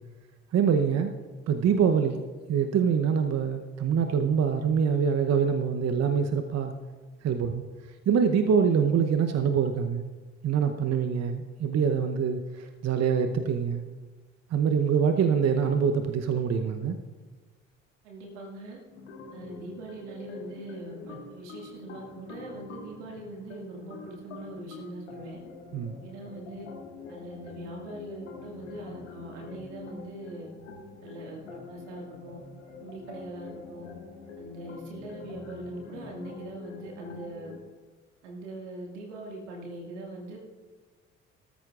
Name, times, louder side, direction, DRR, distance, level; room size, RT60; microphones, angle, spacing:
voice 1, 0.5-1.1 1.5-2.2 2.5-6.7 7.2-7.6 8.1-10.0 10.4-13.8 14.5-17.0 25.7-26.0, right 7 dB, 45° right, 7 dB, 0.9 m, -25 dB
voice 2, 18.0-18.8 19.3-25.4 26.0-26.7 27.1-30.5 31.0-32.4 32.8-33.9 34.4-37.6 38.2-40.4, right 2 dB, 80° right, 0 dB, 2.1 m, -42 dB
sound 1, 18.9-37.6, left 4 dB, 85° left, 1.8 m, -45 dB
18.5 x 13.5 x 2.5 m, 1.4 s
hypercardioid pair, 50°, 35 cm